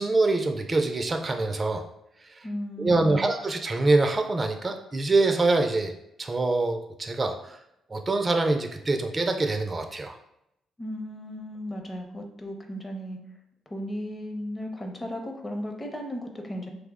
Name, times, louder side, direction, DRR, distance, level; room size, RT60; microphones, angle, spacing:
voice 1, 0.0-1.8 2.8-5.9 6.2-7.6 7.9-10.2, right 2 dB, 25° right, 5 dB, 0.3 m, -25 dB
voice 2, 2.4-3.3 10.8-13.2 13.7-16.7, equal, 20° left, 2 dB, 0.6 m, -35 dB
3.2 x 2.0 x 3.5 m, 0.80 s
cardioid pair, 90°, 0 cm